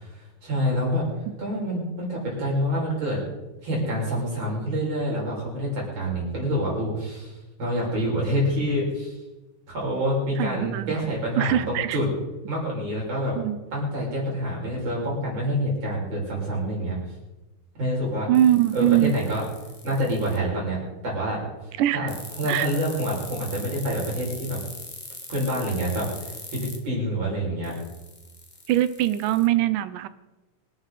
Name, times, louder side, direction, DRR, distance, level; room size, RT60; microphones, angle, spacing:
voice 1, 0.0-1.1 1.4-3.2 3.6-9.2 9.7-12.1 12.5-13.4 13.7-17.0 17.8-18.3 18.7-19.4 19.8-21.5 22.0-22.1 22.4-24.6 25.3-27.7, equal, 50° right, -4 dB, 7.1 m, -27 dB
voice 2, 10.4-12.0 13.4-13.6 18.3-19.2 21.8-22.1 22.4-22.7 28.7-30.1, right 13 dB, 85° right, 14 dB, 2.3 m, -22 dB
sound 1, 18.3-20.4 22.1-26.8 27.6-29.5, left 2 dB, 15° left, 1.5 m, -40 dB
26.0 x 12.0 x 4.1 m, 1.1 s
omnidirectional pair, 3.7 m